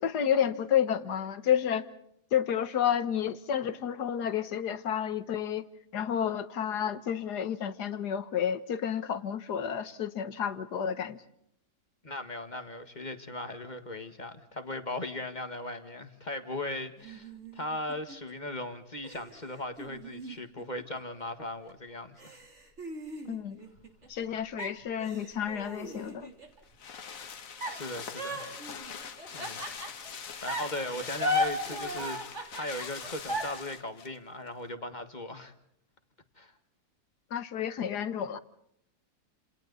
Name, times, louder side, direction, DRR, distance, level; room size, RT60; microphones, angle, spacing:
voice 1, 0.0-1.9 2.3-5.6 5.9-11.2 23.3-23.6 24.1-26.3 37.3-38.4, left 9 dB, 80° left, 1.8 m, -30 dB
voice 2, 12.0-22.4 27.7-28.6 29.3-29.6 30.2-32.2 32.5-35.5 36.4-36.5, left 2 dB, 30° left, 1.8 m, -38 dB
sound 1, 17.0-18.3 19.0-21.2 21.7-21.8 22.2-24.2 24.6-26.6 27.6-30.1 30.5-33.6, left 1 dB, 45° right, 3.8 m, -36 dB
sound 2, 26.0-34.2 34.5-34.6, left 6 dB, 55° left, 1.6 m, -43 dB
29.5 x 28.5 x 4.1 m
omnidirectional pair, 1.7 m